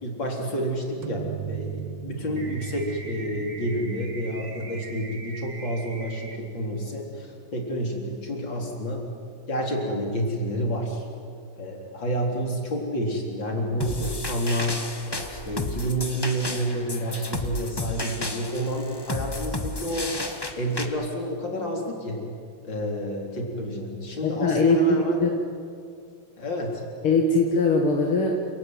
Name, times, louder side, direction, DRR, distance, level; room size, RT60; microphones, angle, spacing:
voice 1, 0.0-9.1 9.5-11.1 11.6-14.9 15.3-22.3 22.6-25.2 26.4-26.8, equal, 60° left, 0 dB, 4.6 m, -29 dB
sound 1, 1.0-6.6, right 9 dB, 70° right, 1.6 m, -38 dB
sound 2, 2.4-6.4, right 3 dB, 30° right, 1.9 m, -42 dB
sound 3, 13.8-20.9, left 2 dB, 15° left, 1.0 m, -33 dB
voice 2, 24.2-25.3 27.0-28.3, left 3 dB, 85° left, 1 dB, 2.7 m, -21 dB
28.5 x 17.5 x 9.5 m, 2.3 s
omnidirectional pair, 2.3 m